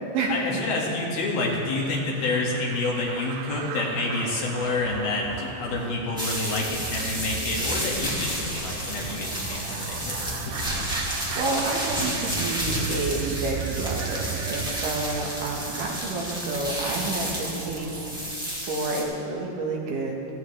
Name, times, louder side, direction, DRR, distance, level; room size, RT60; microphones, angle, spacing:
voice 1, 0.3-10.2, left 2 dB, 85° left, -3 dB, 3.9 m, -28 dB
sound 1, 1.3-18.4, right 9 dB, 80° right, 2.0 m, -37 dB
sound 2, 6.2-19.0, equal, ahead, 1.3 m, -32 dB
Walk footsteps / Chatter / Hiss, 6.9-12.9, left 3 dB, 70° left, 0.9 m, -39 dB
voice 2, 11.1-18.4 18.7-20.1, right 3 dB, 65° right, -1 dB, 2.8 m, -30 dB
16.0 x 15.0 x 3.3 m, 2.7 s
omnidirectional pair, 4.2 m